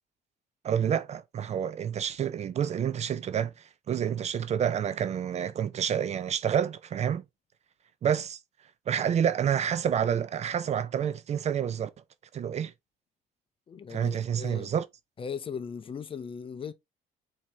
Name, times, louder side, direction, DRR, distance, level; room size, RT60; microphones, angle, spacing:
voice 1, 0.6-3.5 3.9-7.2 8.0-8.4 8.9-11.9 12.3-12.7 13.9-14.9, right 8 dB, 40° right, 0.5 m, -28 dB
voice 2, 13.7-14.7 15.2-16.7, left 6 dB, 30° left, 0.5 m, -38 dB
4.5 x 2.8 x 3.2 m
cardioid pair, 110°, 17 cm